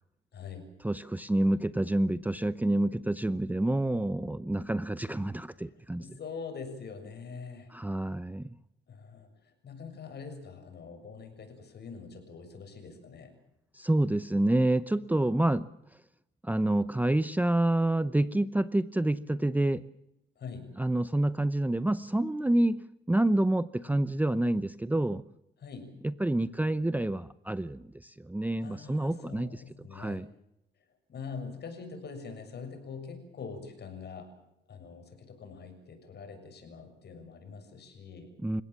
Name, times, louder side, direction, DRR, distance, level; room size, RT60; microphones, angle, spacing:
voice 1, 0.3-0.7 6.0-7.7 8.9-13.3 20.4-20.7 23.8-24.2 25.6-25.9 28.6-30.2 31.1-34.3 34.7-38.3, left 5 dB, 55° left, 7 dB, 7.0 m, -44 dB
voice 2, 0.8-6.0 7.7-8.6 13.7-15.7 16.4-19.8 20.8-22.8 23.1-25.2 26.0-29.6 29.9-30.3 38.4-38.6, right 1 dB, 10° right, 14 dB, 0.8 m, -28 dB
29.0 x 17.0 x 7.4 m, 0.84 s
cardioid pair, 90°, 20 cm